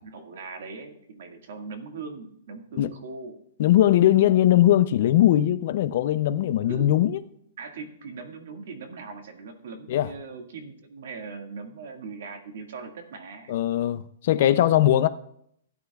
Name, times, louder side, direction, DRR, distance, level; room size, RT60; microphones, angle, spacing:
voice 1, 0.0-3.4 6.7-6.9 7.6-13.5, right 4 dB, 60° right, 1.8 m, -40 dB
voice 2, 3.6-7.2 9.9-10.1 13.5-15.1, left 12 dB, 40° left, 0.5 m, -20 dB
16.0 x 10.0 x 2.4 m
hypercardioid pair, 170°, 0 cm